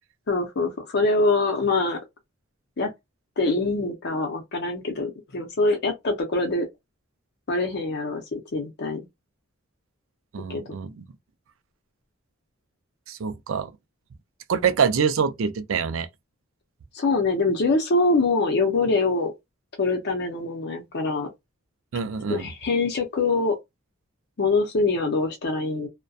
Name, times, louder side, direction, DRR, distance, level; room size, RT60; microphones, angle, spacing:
voice 1, 0.3-2.0 2.8-2.9 3.4-6.7 7.5-9.1 10.5-10.6 16.9-19.3 19.8-21.3 22.3-23.6 24.4-25.9, left 3 dB, 55° left, 0.6 m, -24 dB
voice 2, 10.3-11.0 13.1-13.7 14.5-16.1 21.9-22.5, right 6 dB, 65° right, 0.4 m, -25 dB
2.6 x 2.1 x 2.3 m
head